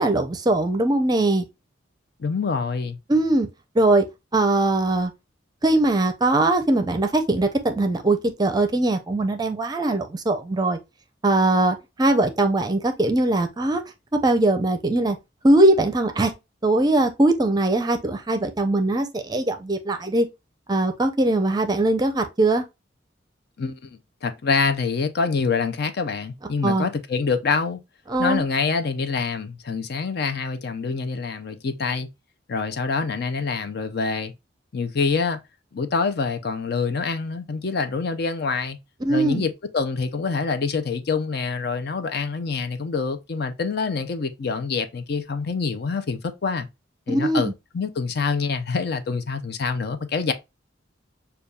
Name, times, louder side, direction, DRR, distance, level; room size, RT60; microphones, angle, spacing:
voice 1, 0.0-1.4 3.1-3.5 3.7-4.0 4.3-5.1 5.6-10.8 11.2-13.8 14.1-15.2 15.4-16.3 16.6-20.3 20.7-22.6 26.6-26.9 28.1-28.4 39.0-39.4 47.1-47.5, right 2 dB, 20° right, 0.5 m, -21 dB
voice 2, 2.2-3.0 23.6-27.8 28.2-32.1 32.5-34.3 34.7-35.4 35.7-38.8 39.1-46.7 47.1-50.3, left 4 dB, 55° left, 0.5 m, -26 dB
6.6 x 2.3 x 2.2 m
head